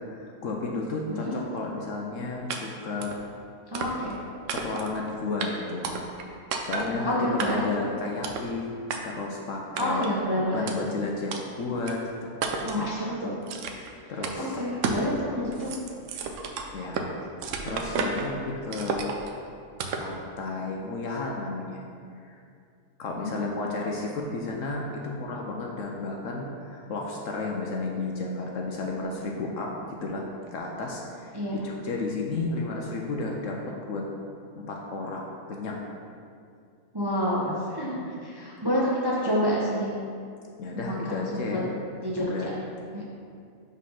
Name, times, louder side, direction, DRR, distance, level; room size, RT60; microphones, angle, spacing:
voice 1, 0.1-1.3 1.5-3.1 4.5-5.9 6.6-10.0 10.5-12.9 14.1-14.5 16.7-17.3 17.6-19.1 20.0-21.8 22.2-22.4 23.0-29.7 30.0-30.2 30.5-34.1 34.5-35.8 40.6-41.6 42.3-42.5, left 3 dB, 65° left, -1 dB, 0.9 m, -32 dB
sound 1, 2.5-2.6 3.0-3.2 3.7-4.2 4.5-5.0 5.4-5.5 5.8-6.2 6.5-6.9 7.4-7.8 8.2-8.5 8.9-9.0 9.8-10.1 10.7-10.8 11.3-11.4 11.9-12.0 12.4-12.8 13.5-13.9 14.2-14.4 14.8-15.1 15.4-17.1 17.4-18.3 18.7-19.3 19.8-20.1, right 5 dB, 65° right, 0.8 m, -32 dB
voice 2, 3.7-4.2 7.0-7.8 9.8-10.7 12.6-13.3 14.0-15.7 23.2-23.4 31.3-31.6 36.9-39.9 40.7-41.6 42.0-42.5 42.9-43.0, equal, 20° right, -6 dB, 0.7 m, -28 dB
5.2 x 4.1 x 5.5 m, 2.4 s
omnidirectional pair, 1.6 m